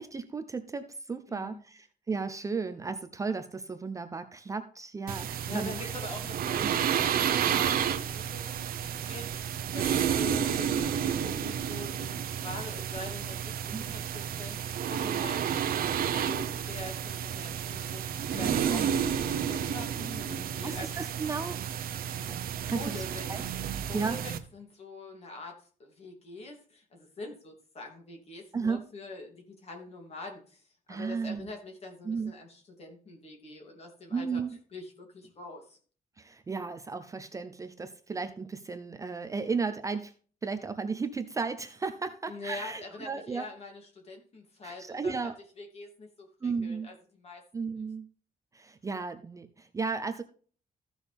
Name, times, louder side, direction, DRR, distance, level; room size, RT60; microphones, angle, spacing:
voice 1, 0.0-5.9 6.6-6.7 13.7-13.8 18.3-19.0 20.6-21.6 22.7-23.0 23.3-23.5 23.9-24.2 28.5-28.8 30.9-31.5 32.0-32.3 34.1-34.6 36.2-40.1 40.4-43.5 44.6-45.4 46.4-46.9 47.5-48.1 48.5-50.2, right 4 dB, 20° right, 9 dB, 0.6 m, -34 dB
voice 2, 1.3-1.6 5.5-18.9 19.2-20.9 22.6-23.4 23.8-34.4 34.7-35.8 42.3-47.4, left 2 dB, 40° left, 2 dB, 2.8 m, -44 dB
sound 1, 5.1-24.4, right 9 dB, 70° right, 0.9 m, -31 dB
14.5 x 6.1 x 3.5 m, 0.42 s
wide cardioid pair, 175°, 16 cm